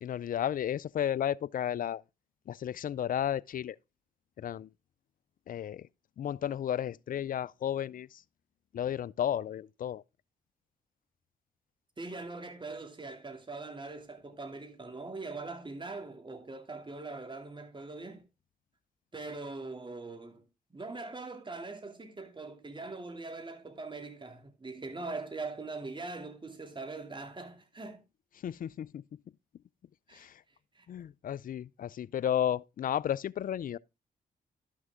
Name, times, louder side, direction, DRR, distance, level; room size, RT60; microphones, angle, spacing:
voice 1, 0.0-2.0 2.5-3.8 4.4-4.7 5.5-5.9 6.2-8.2 8.7-10.0 28.4-29.0 30.1-30.4 30.9-33.8, left 10 dB, 50° left, 0.4 m, -33 dB
voice 2, 12.0-18.2 19.1-20.4 20.7-28.0 30.1-30.3 30.7-30.9, right 3 dB, 25° right, 2.5 m, -42 dB
12.0 x 6.3 x 3.5 m
supercardioid pair, 50°, 18 cm